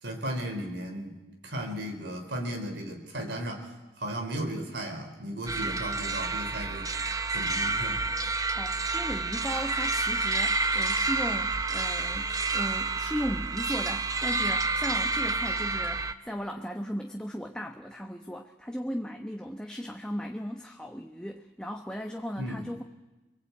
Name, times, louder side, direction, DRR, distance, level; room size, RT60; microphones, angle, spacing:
voice 1, 0.0-1.2 1.4-3.7 4.0-6.9 7.3-8.0 22.4-22.6, equal, 75° right, 3 dB, 4.0 m, -35 dB
sound 1, 5.5-16.1, right 3 dB, 20° right, 0.9 m, -29 dB
voice 2, 8.5-22.8, equal, 5° left, 3 dB, 1.0 m, -36 dB
24.5 x 22.5 x 8.5 m, 1.1 s
head